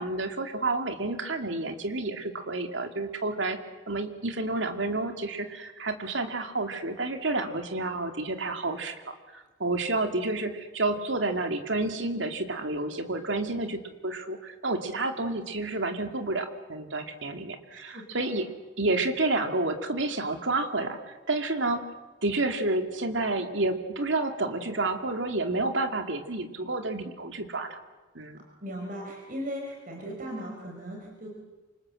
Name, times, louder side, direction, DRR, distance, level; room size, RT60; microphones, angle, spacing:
voice 1, 0.0-3.6 3.9-18.5 18.8-21.8 22.2-27.8 28.1-28.4, right 2 dB, 80° right, 6 dB, 2.6 m, -30 dB
voice 2, 17.7-18.3 28.6-31.3, equal, 45° right, 0 dB, 4.8 m, -38 dB
27.5 x 26.0 x 7.8 m, 1.2 s
head